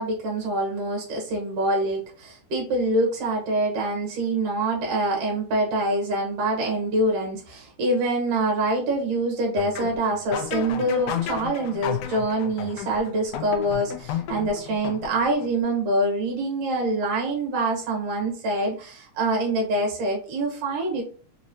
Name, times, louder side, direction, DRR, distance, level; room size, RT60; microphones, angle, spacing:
voice 1, 0.0-21.0, right 1 dB, 60° right, -1 dB, 2.0 m, -25 dB
sound 1, 9.6-15.5, left 9 dB, 85° left, 1.4 m, -33 dB
5.0 x 3.0 x 2.6 m, 0.39 s
omnidirectional pair, 3.4 m